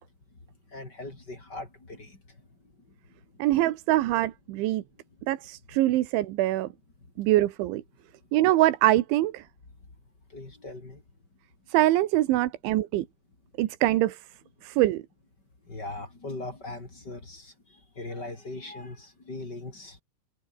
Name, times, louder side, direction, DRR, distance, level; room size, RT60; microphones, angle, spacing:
voice 1, 0.7-2.5 2.9-3.2 4.6-4.8 10.3-11.0 15.6-20.0, left 2 dB, 25° left, 4.8 m, -40 dB
voice 2, 3.4-4.8 5.3-6.7 7.2-7.8 8.3-9.4 11.7-13.1 13.6-14.2 14.6-15.0, right 15 dB, 90° right, 3.7 m, -24 dB
omnidirectional pair, 5.2 m